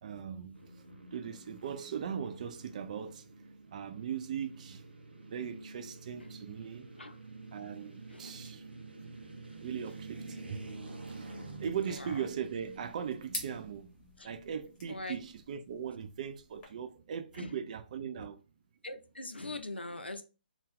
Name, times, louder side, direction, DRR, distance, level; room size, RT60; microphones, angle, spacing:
voice 1, 0.0-0.6 1.1-3.3 3.7-4.8 5.3-6.9 7.5-8.7 9.6-10.6 11.1-18.4, right 8 dB, 45° right, 0.4 m, -39 dB
sound 1, 0.5-14.7, right 3 dB, 70° right, 0.7 m, -49 dB
voice 2, 8.1-8.5 11.9-12.3 14.2-14.3 14.9-15.2 17.3-17.7 18.1-18.3 18.8-20.2, left 2 dB, 85° left, 0.6 m, -43 dB
sound 2, 11.6-16.6, left 2 dB, 15° left, 1.1 m, -48 dB
2.7 x 2.4 x 3.6 m
figure-of-eight pair, 135°, 6 cm